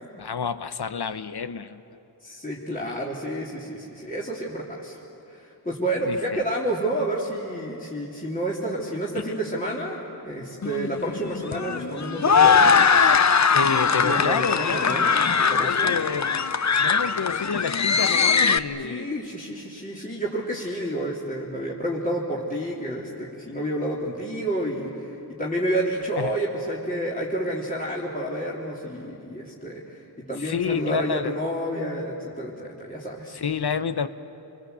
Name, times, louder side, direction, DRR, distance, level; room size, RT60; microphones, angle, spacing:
voice 1, 0.2-1.8 6.0-6.4 9.2-9.3 13.5-15.0 15.6-19.1 26.2-26.3 30.4-31.3 33.3-34.1, left 6 dB, 65° left, 12 dB, 1.0 m, -29 dB
voice 2, 2.2-5.0 5.3-12.8 13.6-15.2 15.5-16.0 18.8-30.0 30.3-33.4, right 1 dB, 20° left, -5 dB, 3.3 m, -30 dB
sound 1, 10.6-18.6, left 6 dB, 40° left, 0.7 m, -20 dB
28.5 x 21.5 x 8.1 m, 2.9 s
cardioid pair, 50°, 42 cm